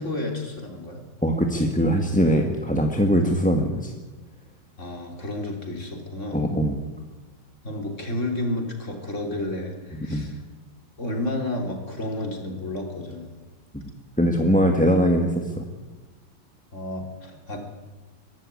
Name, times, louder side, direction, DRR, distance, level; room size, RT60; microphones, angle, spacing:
voice 1, 0.0-1.0 4.8-6.4 7.6-10.4 11.0-13.3 16.7-17.6, left 1 dB, 35° left, 2 dB, 3.6 m, -31 dB
voice 2, 1.2-3.9 6.3-6.8 10.1-10.3 14.2-15.6, equal, 5° left, 3 dB, 1.3 m, -21 dB
23.5 x 13.0 x 9.6 m, 1.3 s
omnidirectional pair, 2.2 m